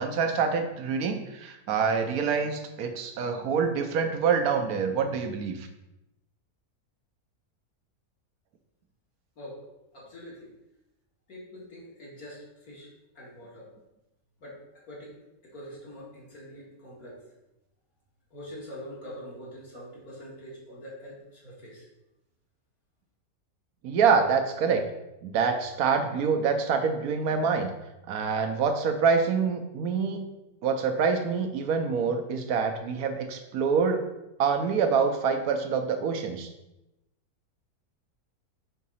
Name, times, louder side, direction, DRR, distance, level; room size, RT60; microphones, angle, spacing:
voice 1, 0.0-5.7 23.8-24.8 25.2-27.7 28.1-30.2 30.6-34.0 34.4-36.5, right 5 dB, 75° right, 5 dB, 1.2 m, -26 dB
voice 2, 9.9-10.5 11.3-13.7 14.4-14.6 14.8-15.1 15.4-17.2 18.3-21.9, equal, 70° left, -5 dB, 2.5 m, -44 dB
5.8 x 3.7 x 5.6 m, 0.94 s
omnidirectional pair, 1.6 m